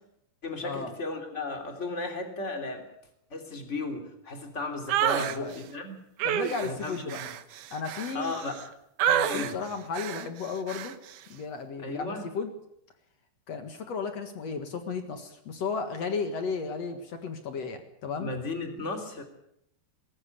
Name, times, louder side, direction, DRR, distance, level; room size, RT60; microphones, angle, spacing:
voice 1, 0.4-2.9 3.3-6.0 6.6-7.3 8.1-8.6 9.3-9.6 11.8-12.2 18.2-19.2, left 2 dB, 20° left, 4 dB, 2.7 m, -35 dB
sound 1, 4.9-5.4 6.2-8.6 9.0-9.5 9.9-10.3 10.7-10.9, right 10 dB, 70° right, 1.9 m, -28 dB
voice 2, 5.2-5.6 6.2-7.2 7.7-8.4 9.1-10.9 11.3-12.5 13.5-18.3, left 5 dB, 55° left, 7 dB, 2.0 m, -34 dB
20.0 x 17.5 x 8.4 m, 0.76 s
omnidirectional pair, 5.0 m